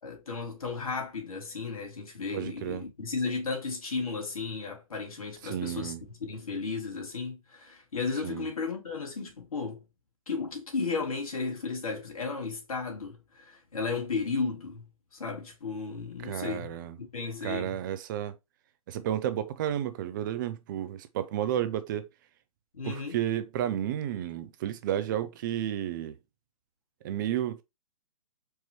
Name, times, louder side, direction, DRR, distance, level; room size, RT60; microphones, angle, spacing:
voice 1, 0.0-9.8 10.3-17.8 22.7-23.2, left 4 dB, 80° left, 2.3 m, -34 dB
voice 2, 2.3-2.8 5.4-6.0 8.2-8.5 16.2-17.0 17.4-18.4 18.9-22.1 22.8-26.1 27.0-27.6, right 11 dB, 35° right, 0.5 m, -32 dB
4.6 x 3.0 x 2.9 m
hypercardioid pair, 140°, 18 cm